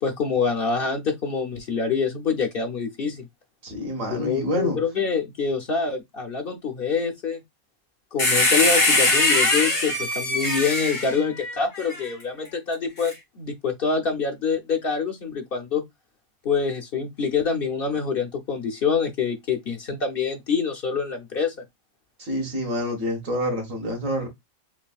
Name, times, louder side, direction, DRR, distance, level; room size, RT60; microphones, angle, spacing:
voice 1, 0.0-3.3 4.1-7.4 8.1-15.8 16.4-21.5, left 5 dB, 50° left, 0.9 m, -26 dB
voice 2, 3.6-4.8 22.2-24.3, equal, 85° right, 2.0 m, -27 dB
sound 1, 8.2-12.0 13.0-13.1, left 2 dB, 75° left, 2.4 m, -21 dB
5.8 x 2.7 x 2.3 m
omnidirectional pair, 1.3 m